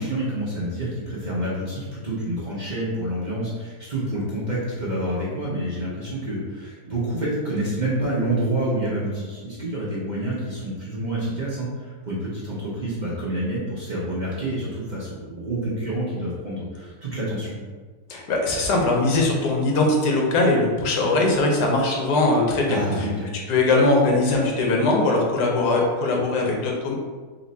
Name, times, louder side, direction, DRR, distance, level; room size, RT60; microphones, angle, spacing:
voice 1, 0.0-17.6 22.7-23.3, right 1 dB, 40° right, -7 dB, 0.7 m, -28 dB
voice 2, 18.1-22.8 23.5-26.9, left 2 dB, 90° left, -1 dB, 1.4 m, -20 dB
4.1 x 2.5 x 4.0 m, 1.4 s
omnidirectional pair, 1.7 m